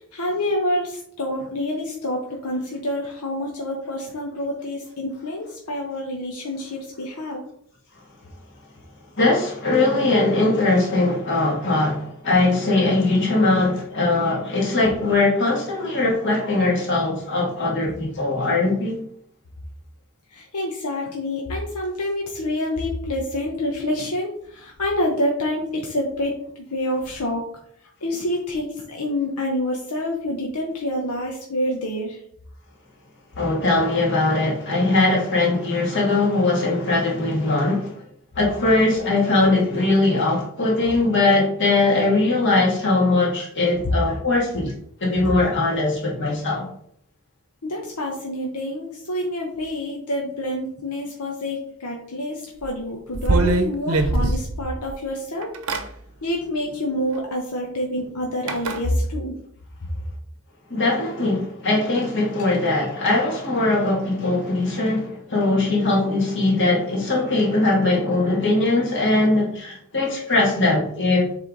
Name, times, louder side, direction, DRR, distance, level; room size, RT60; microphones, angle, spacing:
voice 1, 0.1-7.4 20.3-26.3 26.7-27.5 28.0-32.2 47.6-55.6 56.2-59.4, left 1 dB, 90° left, 1.0 m, -27 dB
voice 2, 9.2-19.0 33.4-38.0 38.3-44.7 45.0-46.7 60.7-71.4, left 2 dB, 55° left, 2.3 m, -20 dB
sound 1, 52.6-52.7 53.1-54.9 55.4-55.9 57.1-57.2 58.5-58.8, right 2 dB, 70° right, 0.8 m, -21 dB
7.3 x 3.4 x 3.9 m
head